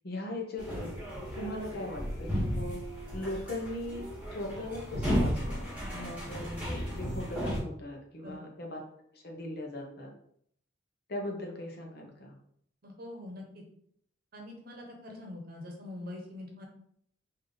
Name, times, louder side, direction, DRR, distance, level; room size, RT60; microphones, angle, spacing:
voice 1, 0.0-1.0 1.4-2.8 3.1-4.0 4.3-8.8 9.1-10.1 11.1-12.4, left 1 dB, 55° left, 1 dB, 0.8 m, -39 dB
sound 1, 0.6-7.6, equal, 5° right, 1.5 m, -34 dB
voice 2, 12.8-13.6 14.3-16.7, left 1 dB, 50° right, 1 dB, 0.9 m, -44 dB
3.4 x 2.7 x 3.8 m, 0.68 s
head